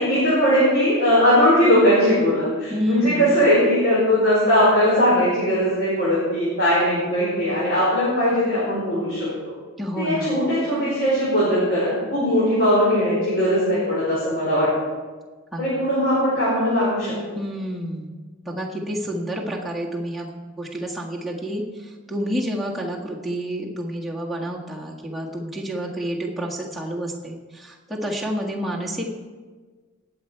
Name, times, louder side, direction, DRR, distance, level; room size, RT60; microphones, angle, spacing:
voice 1, 0.0-9.2 10.0-14.7 15.6-17.1, equal, 50° left, -9 dB, 5.1 m, -19 dB
voice 2, 2.7-3.3 9.8-10.4 15.5-15.8 17.3-18.1 18.4-29.1, equal, ahead, -4 dB, 1.7 m, -29 dB
19.5 x 8.0 x 4.6 m, 1.4 s
head